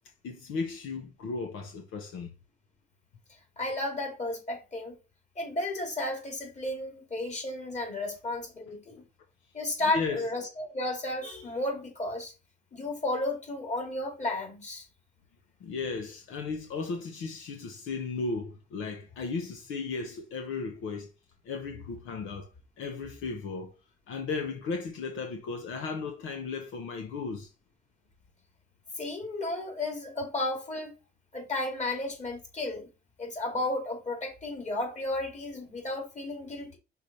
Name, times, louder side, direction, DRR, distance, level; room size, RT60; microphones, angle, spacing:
voice 1, 0.2-2.3 9.9-10.2 15.6-21.1 21.4-22.5 22.8-23.7 24.1-27.5, left 4 dB, 85° left, 1.1 m, -35 dB
voice 2, 3.6-5.0 5.4-9.0 9.5-12.3 12.7-14.9 29.0-31.0 31.3-32.9 33.2-36.8, left 2 dB, 35° left, 3.1 m, -33 dB
6.0 x 3.7 x 5.5 m
cardioid pair, 90°, 20 cm